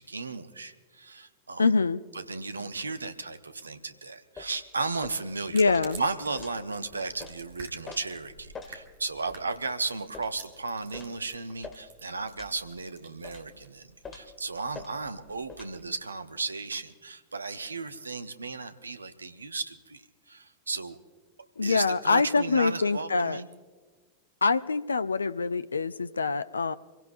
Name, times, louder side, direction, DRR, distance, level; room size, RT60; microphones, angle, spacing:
voice 1, 0.0-1.7 2.1-5.6 6.0-21.0 21.6-23.5, right 3 dB, 75° right, 10 dB, 0.8 m, -35 dB
voice 2, 1.6-2.0 5.5-6.0 21.6-23.4 24.4-26.8, left 4 dB, 75° left, 16 dB, 0.4 m, -25 dB
sound 1, 4.4-4.6 5.0-5.2 5.7-5.8 6.4-6.6 7.2-7.4 7.9-8.0 8.5-8.8 9.3-9.4 10.1-10.4 10.9-11.2 11.6-11.8 12.4-12.6 13.2-13.5 14.0-14.3 14.7-14.9 15.5-15.7, left 5 dB, 20° left, 1.7 m, -43 dB
sound 2, 5.4-16.1, right 5 dB, 60° right, 1.9 m, -51 dB
26.0 x 16.5 x 2.7 m, 1.4 s
figure-of-eight pair, 90°, 0 cm